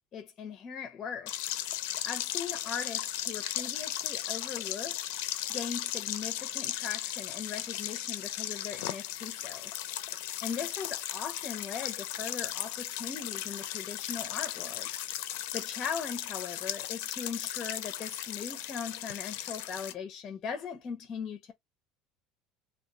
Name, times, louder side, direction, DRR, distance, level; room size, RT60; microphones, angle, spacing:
voice 1, 0.1-1.4 2.0-5.1 5.5-9.8 10.4-14.9 15.5-21.5, left 6 dB, 30° left, 0.5 m, -39 dB
sound 1, 1.3-19.9, left 13 dB, 80° left, 0.4 m, -36 dB
2.2 x 2.1 x 3.7 m
cardioid pair, 155°, 0 cm